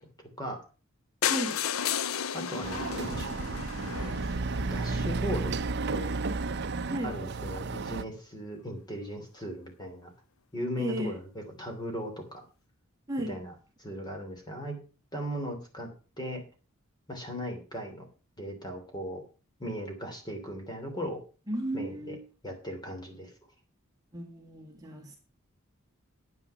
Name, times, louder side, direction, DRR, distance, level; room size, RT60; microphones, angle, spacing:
sound 1, 1.2-5.1 5.8-5.9 6.1-6.2 6.5-6.6 6.8-6.9, left 8 dB, 75° left, 0.6 m, -33 dB
voice 1, 2.3-3.3 4.6-5.5 5.9-6.1 7.0-10.1 10.5-12.4 13.3-13.5 13.8-14.8 15.1-15.9 16.2-16.4 17.1-18.0 18.4-19.2 19.6-21.2 21.7-22.2 22.4-23.3, equal, 20° left, 3.0 m, -37 dB
Chatter / Car passing by / Motorcycle, 2.6-8.0, right 3 dB, 50° right, 0.7 m, -32 dB
voice 2, 10.8-11.2 13.1-13.4 21.5-22.2 24.1-25.2, right 1 dB, 15° right, 1.9 m, -34 dB
9.8 x 9.3 x 5.7 m
head